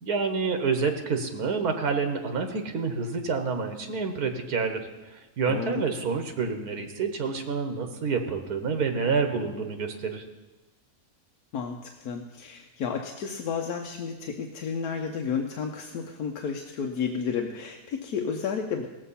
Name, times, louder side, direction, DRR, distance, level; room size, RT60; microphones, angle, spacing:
voice 1, 0.0-4.8 5.1-10.2, right 5 dB, 90° right, 6 dB, 1.7 m, -28 dB
voice 2, 5.5-5.9 11.5-18.9, left 6 dB, 85° left, 3 dB, 1.3 m, -32 dB
17.5 x 7.6 x 5.6 m, 1.1 s
omnidirectional pair, 1.6 m